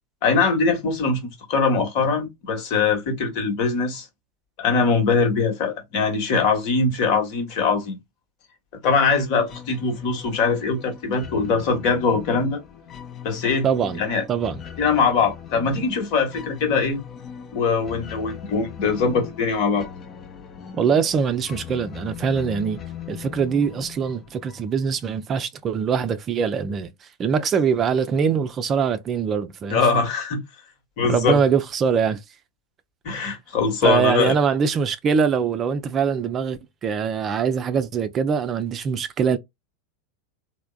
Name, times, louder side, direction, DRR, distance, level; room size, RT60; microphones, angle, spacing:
voice 1, 0.2-1.2 1.5-4.1 4.6-8.0 8.8-12.6 13.2-13.7 14.0-14.2 14.8-17.0 17.5-19.9 29.7-30.4 31.0-31.4 33.0-34.3, left 4 dB, 50° left, 1.2 m, -22 dB
sound 1, 9.5-25.0, left 9 dB, 35° left, 0.6 m, -40 dB
voice 2, 13.6-14.0 14.3-14.6 20.8-22.8 23.1-29.8 31.1-32.2 33.1-33.2 33.8-39.4, right 6 dB, 30° right, 0.4 m, -23 dB
3.3 x 2.1 x 2.3 m
hypercardioid pair, 90°, 0 cm